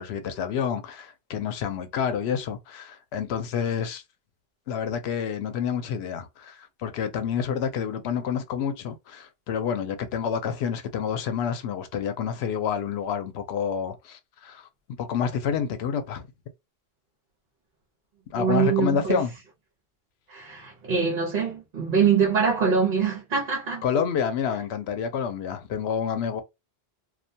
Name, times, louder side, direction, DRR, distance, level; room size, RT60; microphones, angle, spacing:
voice 1, 0.0-4.0 4.7-14.7 15.0-16.3 18.3-19.3 23.8-26.4, left 7 dB, 90° left, 0.8 m, -28 dB
voice 2, 18.3-19.2 20.3-23.8, right 6 dB, 60° right, 0.9 m, -24 dB
2.4 x 2.1 x 2.6 m
omnidirectional pair, 1.0 m